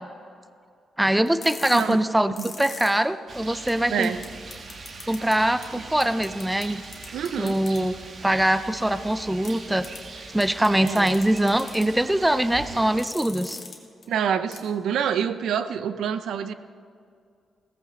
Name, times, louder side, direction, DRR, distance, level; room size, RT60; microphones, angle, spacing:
voice 1, 1.0-4.1 5.1-6.8 7.4-7.9 8.2-9.9 10.3-13.6, right 1 dB, 5° right, 13 dB, 0.5 m, -23 dB
sound 1, 1.3-2.9 3.3-3.4 3.7-3.8 4.0-4.3 4.5-5.3 5.6-5.7 6.0-6.6 6.9-7.8 9.4-9.5 9.8-10.0 10.4-11.8 12.8-13.8 14.0-14.1 14.5-14.6, left 5 dB, 45° left, 2.2 m, -39 dB
Rain, 3.3-13.1, right 3 dB, 45° right, 1.4 m, -41 dB
voice 2, 3.9-4.2 5.7-5.8 7.1-7.6 10.8-11.1 14.1-16.5, right 8 dB, 85° right, 11 dB, 0.6 m, -27 dB
17.0 x 14.5 x 3.9 m, 2.3 s
cardioid pair, 125°, 0 cm